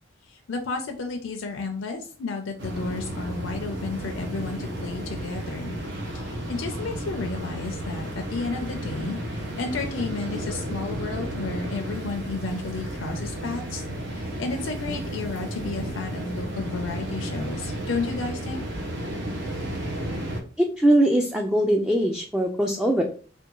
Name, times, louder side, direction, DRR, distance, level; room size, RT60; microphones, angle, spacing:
voice 1, 0.3-5.8 6.1-18.6, left 4 dB, 75° left, 4 dB, 0.4 m, -32 dB
sound 1, 2.6-20.4, right 1 dB, 65° right, 0.7 m, -33 dB
voice 2, 20.6-23.0, right 1 dB, 5° right, 1 dB, 0.3 m, -22 dB
3.5 x 2.2 x 3.0 m, 0.39 s
head